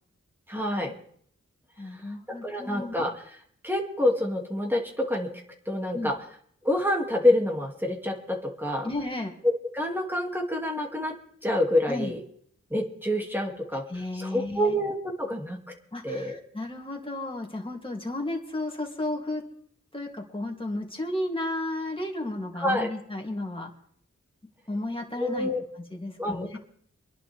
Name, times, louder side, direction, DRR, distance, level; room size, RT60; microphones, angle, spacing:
voice 1, 0.5-0.9 2.4-3.1 3.6-5.3 5.7-6.1 6.6-8.9 9.4-11.1 11.4-12.2 12.7-13.8 14.1-15.6 16.0-16.4 22.6-22.9 25.2-25.6 26.2-26.6, left 1 dB, 5° right, 0 dB, 2.6 m, -27 dB
voice 2, 1.8-2.9 5.9-6.1 8.8-9.3 11.9-12.1 13.9-14.8 15.9-19.4 19.9-23.7 24.7-25.5 25.8-26.6, left 1 dB, 20° left, 0 dB, 2.9 m, -33 dB
24.5 x 11.0 x 3.6 m, 0.62 s
wide cardioid pair, 60°, 29 cm